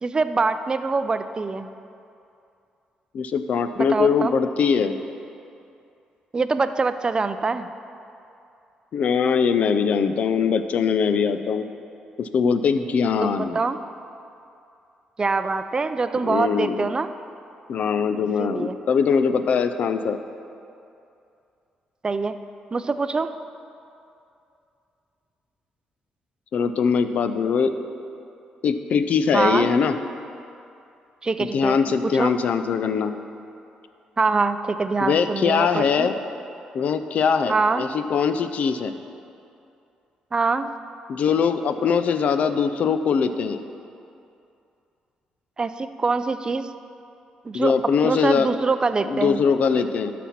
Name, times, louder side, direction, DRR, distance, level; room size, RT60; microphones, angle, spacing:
voice 1, 0.0-1.7 3.7-4.3 6.3-7.7 13.2-13.8 15.2-17.1 18.4-18.8 22.0-22.4 22.7-23.3 29.3-29.7 31.2-31.8 32.2-32.3 34.2-36.1 37.5-37.8 40.3-40.7 45.6-46.7 47.4-47.7 48.0-49.4, right 4 dB, 30° right, 11 dB, 0.5 m, -24 dB
voice 2, 3.1-5.0 8.9-11.7 12.2-13.6 16.3-16.9 17.7-20.2 26.5-27.7 28.6-29.9 31.4-33.1 35.0-36.1 36.7-38.9 41.1-43.6 47.5-48.5 49.0-50.1, left 6 dB, 65° left, 10 dB, 0.5 m, -22 dB
12.5 x 4.3 x 5.8 m, 2.6 s
supercardioid pair, 65°, 3 cm